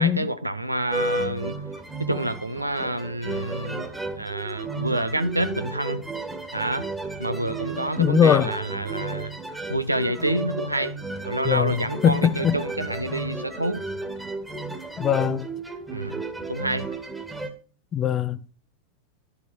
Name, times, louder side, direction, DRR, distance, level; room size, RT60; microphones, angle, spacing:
voice 1, 0.0-1.6 2.0-3.9 4.2-6.0 6.5-6.9 7.2-9.3 9.7-11.0 11.2-13.9 15.9-16.2 16.5-16.9, right 1 dB, 85° right, 0.9 m, -28 dB
sound 1, 0.9-17.5, right 2 dB, 5° right, 1.8 m, -33 dB
voice 2, 8.0-8.5 11.4-12.6 15.0-15.5 17.9-18.4, left 9 dB, 25° left, 0.8 m, -21 dB
12.0 x 7.3 x 6.2 m
figure-of-eight pair, 90°, 0 cm